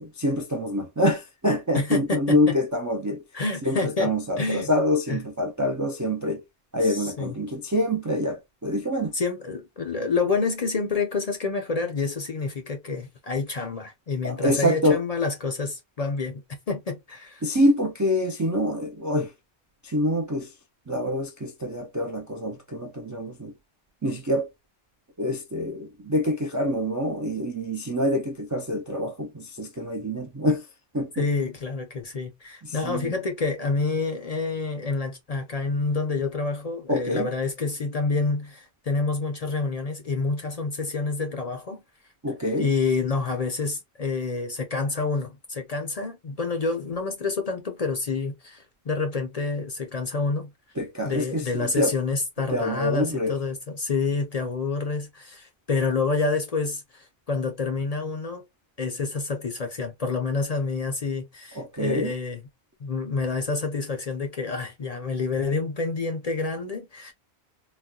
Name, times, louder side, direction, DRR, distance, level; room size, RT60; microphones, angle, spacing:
voice 1, 0.0-3.2 3.6-6.4 6.7-9.1 14.2-15.0 17.4-19.3 19.8-20.5 20.9-23.5 24.0-24.5 25.2-30.7 30.9-31.3 32.6-33.1 36.9-37.3 42.2-42.7 50.8-52.0 52.5-53.4 61.5-62.1, equal, 30° right, 0.3 m, -26 dB
voice 2, 1.7-2.5 3.3-4.7 5.1-5.2 6.8-7.3 9.1-17.4 31.2-41.8 42.6-50.5 51.0-58.4 58.8-62.4 62.8-67.1, left 4 dB, 45° left, 0.6 m, -28 dB
4.0 x 2.2 x 2.2 m
omnidirectional pair, 1.1 m